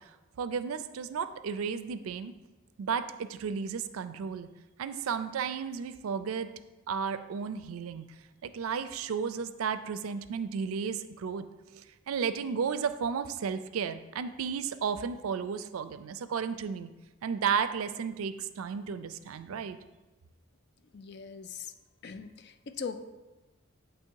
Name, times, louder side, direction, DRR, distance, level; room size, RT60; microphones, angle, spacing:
voice 1, 0.4-2.3 2.8-4.5 4.8-6.5 6.9-8.1 8.4-11.4 11.7-16.9 17.2-19.8, right 6 dB, 85° right, 12 dB, 0.4 m, -33 dB
voice 2, 20.9-21.7 22.0-23.0, left 6 dB, 50° left, 9 dB, 0.4 m, -40 dB
8.3 x 3.1 x 4.6 m, 1.1 s
head